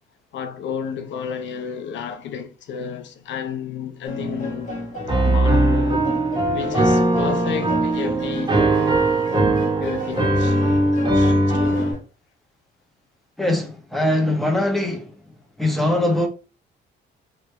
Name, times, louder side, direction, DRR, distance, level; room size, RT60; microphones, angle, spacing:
voice 1, 0.3-4.8 5.2-6.1 6.5-8.6 9.8-10.6 11.1-12.0, left 6 dB, 70° left, 0.6 m, -31 dB
sound 1, 4.1-12.0, left 1 dB, 40° left, 1.3 m, -32 dB
Piano, 5.1-11.9, right 1 dB, 20° right, 1.0 m, -19 dB
voice 2, 13.4-15.1 15.6-16.3, left 1 dB, ahead, 0.9 m, -21 dB
3.1 x 2.2 x 3.2 m
cardioid pair, 90°, 20 cm